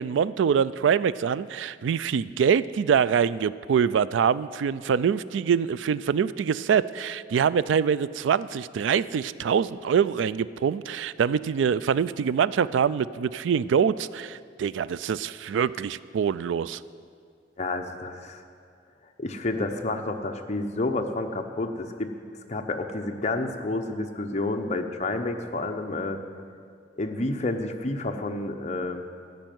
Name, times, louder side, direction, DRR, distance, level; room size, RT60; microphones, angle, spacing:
voice 1, 0.0-16.8, right 7 dB, 85° right, 18 dB, 0.3 m, -24 dB
voice 2, 17.6-18.4 19.2-22.1 22.5-26.2 27.0-29.0, left 2 dB, 40° left, 5 dB, 0.8 m, -29 dB
13.5 x 5.4 x 9.2 m, 2.2 s
head